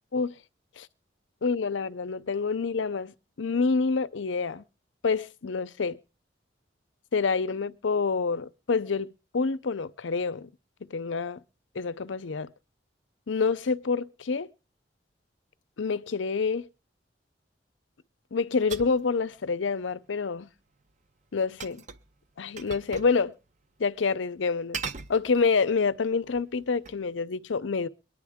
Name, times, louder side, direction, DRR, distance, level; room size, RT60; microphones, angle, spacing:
voice 1, 1.4-4.6 5.0-6.0 7.1-10.5 10.9-11.4 11.7-12.5 13.3-14.5 15.8-16.7 18.3-20.5 21.3-21.8 22.4-23.3 23.8-24.8 25.1-27.9, left 4 dB, 80° left, 0.6 m, -27 dB
sound 1, 18.7-19.1 21.6-22.1 22.6-23.2 23.5-23.6 24.7-25.7 26.2-27.0, right 5 dB, 40° right, 0.6 m, -39 dB
23.0 x 10.0 x 3.6 m
head